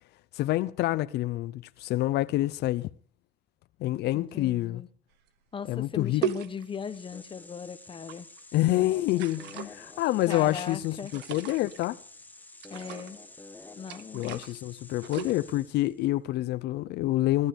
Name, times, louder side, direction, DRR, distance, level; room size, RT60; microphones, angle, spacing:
voice 1, 0.3-2.9 3.8-4.8 5.7-6.2 8.5-12.0 14.1-17.5, left 16 dB, 80° left, 0.6 m, -27 dB
voice 2, 4.1-4.9 5.5-8.3 10.3-11.2 12.7-13.2 13.8-14.5, left 6 dB, 30° left, 1.1 m, -38 dB
sound 1, 5.3-5.4 6.2-7.0 7.9-8.4 9.1-9.7 10.2-11.9 12.6-13.2 13.9-14.6 14.9-15.4, right 10 dB, 90° right, 1.2 m, -37 dB
sound 2, 6.4-16.0, left 2 dB, 10° left, 1.4 m, -49 dB
17.0 x 12.5 x 5.2 m
cardioid pair, 110°, 17 cm